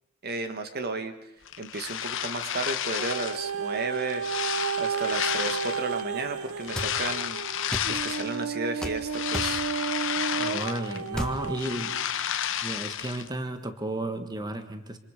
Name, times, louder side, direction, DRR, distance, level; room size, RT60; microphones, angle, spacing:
voice 1, 0.2-1.1 1.6-4.2 4.8-9.6, right 3 dB, 50° right, 8 dB, 1.4 m, -33 dB
sound 1, 1.5-3.5 3.9-6.0 6.6-8.4 8.8-11.1 11.4-13.3, left 10 dB, 65° left, 1.0 m, -31 dB
sound 2, 3.0-12.1 12.7-12.8, right 6 dB, 90° right, 0.8 m, -33 dB
sound 3, 6.7-6.9 7.7-7.9 8.8-9.0 9.3-9.6 11.1-11.4, equal, 5° left, 1.7 m, -32 dB
voice 2, 10.4-11.9 12.6-15.0, right 1 dB, 20° right, 7 dB, 1.6 m, -33 dB
27.0 x 26.0 x 5.0 m, 0.87 s
head